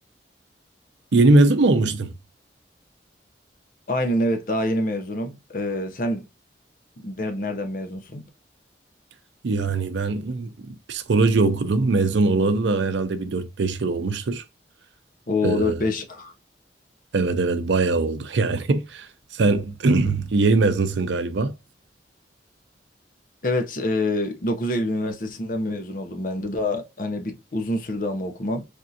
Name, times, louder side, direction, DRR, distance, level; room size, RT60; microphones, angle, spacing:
voice 1, 1.1-2.1 9.4-14.4 15.4-15.8 17.1-19.1 19.3-21.5, right 3 dB, 80° right, 0.5 m, -21 dB
voice 2, 3.9-6.3 7.0-8.2 15.3-16.3 23.4-28.6, left 1 dB, 50° left, 0.6 m, -26 dB
3.5 x 2.5 x 2.6 m
head